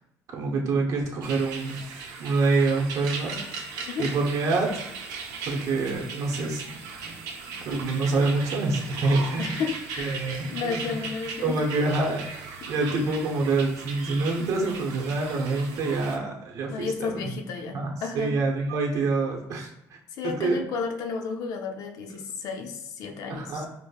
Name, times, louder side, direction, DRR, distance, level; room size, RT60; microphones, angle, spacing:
voice 1, 0.3-3.4 4.0-4.7 5.4-7.1 7.5-9.6 10.0-11.0 11.4-12.2 12.7-17.3 17.8-19.7 20.2-20.6 23.3-23.7, right 3 dB, 55° right, 0 dB, 0.8 m, -26 dB
sound 1, 1.2-16.2, right 5 dB, 85° right, 0.6 m, -38 dB
voice 2, 9.4-10.2 10.5-11.8 16.7-18.4 20.1-23.7, left 5 dB, 65° left, 4 dB, 0.5 m, -32 dB
5.1 x 2.1 x 2.3 m, 0.82 s
cardioid pair, 140°, 7 cm